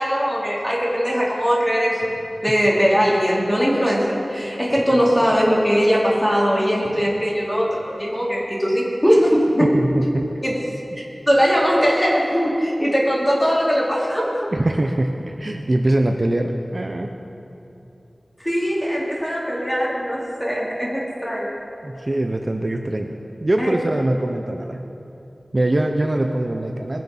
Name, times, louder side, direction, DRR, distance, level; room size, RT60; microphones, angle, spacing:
voice 1, 0.0-2.1 2.4-9.7 10.4-10.6 11.3-14.5 18.4-21.6 23.6-23.8, equal, 15° left, -6 dB, 3.9 m, -20 dB
voice 2, 9.6-10.4 14.5-17.1 21.8-24.8 25.5-27.0, right 1 dB, 40° right, 3 dB, 0.8 m, -23 dB
21.5 x 7.5 x 5.7 m, 2.8 s
wide cardioid pair, 65°, 0 cm